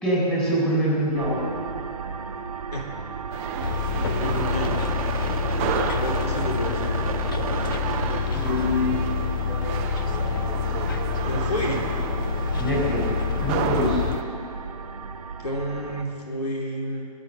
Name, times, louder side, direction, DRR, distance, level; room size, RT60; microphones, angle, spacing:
voice 1, 0.0-1.4 8.3-9.0 9.5-10.8 12.6-13.0 13.4-14.0, equal, 5° left, -6 dB, 4.3 m, -25 dB
sound 1, 1.1-16.0, right 5 dB, 55° right, 1.3 m, -33 dB
sound 2, 3.3-14.2, right 7 dB, 20° right, 0.8 m, -33 dB
Bus, 3.6-14.2, left 7 dB, 30° left, 0.4 m, -28 dB
voice 2, 4.0-4.8 5.6-9.0 11.2-11.9 15.4-17.1, left 1 dB, 65° left, -1 dB, 2.9 m, -31 dB
23.0 x 7.8 x 7.7 m, 2.5 s
figure-of-eight pair, 135°, 21 cm